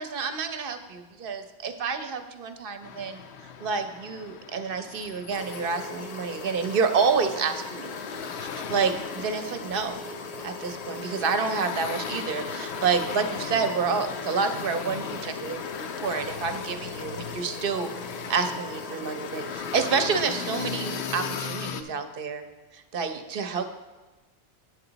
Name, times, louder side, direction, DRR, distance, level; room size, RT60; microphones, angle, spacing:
voice 1, 0.0-3.2 3.6-10.0 10.4-17.9 18.3-22.4 22.9-23.7, right 5 dB, 55° right, 8 dB, 0.8 m, -29 dB
sound 1, 2.8-21.8, left 7 dB, 70° left, 0.8 m, -38 dB
sound 2, 5.3-21.5, left 3 dB, 50° left, 0.5 m, -39 dB
8.4 x 7.8 x 3.9 m, 1.2 s
omnidirectional pair, 1.2 m